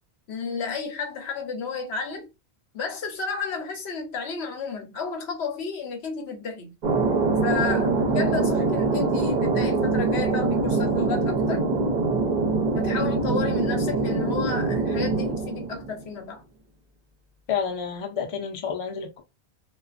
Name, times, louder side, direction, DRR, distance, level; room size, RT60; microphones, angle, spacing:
voice 1, 0.3-2.3 2.7-6.7 7.4-11.6 12.7-16.4, left 5 dB, 75° left, 0.9 m, -32 dB
Thunder, 6.8-16.1, right 3 dB, 50° right, 0.7 m, -24 dB
voice 2, 17.5-19.2, left 7 dB, 45° left, 0.5 m, -29 dB
2.3 x 2.2 x 2.4 m
omnidirectional pair, 1.1 m